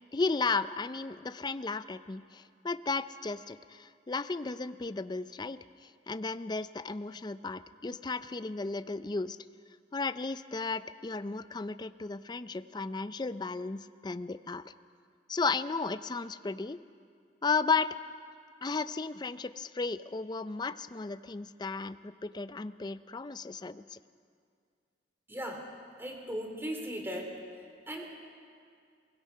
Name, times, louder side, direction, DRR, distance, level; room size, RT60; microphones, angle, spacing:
voice 1, 0.1-5.6 6.1-9.4 9.9-14.6 15.3-16.8 17.4-18.0 18.6-24.0, left 4 dB, 25° left, 13 dB, 0.4 m, -34 dB
voice 2, 25.3-25.6 26.0-27.3 27.9-28.1, equal, 15° right, 2 dB, 2.8 m, -37 dB
23.0 x 20.5 x 5.6 m, 2.3 s
head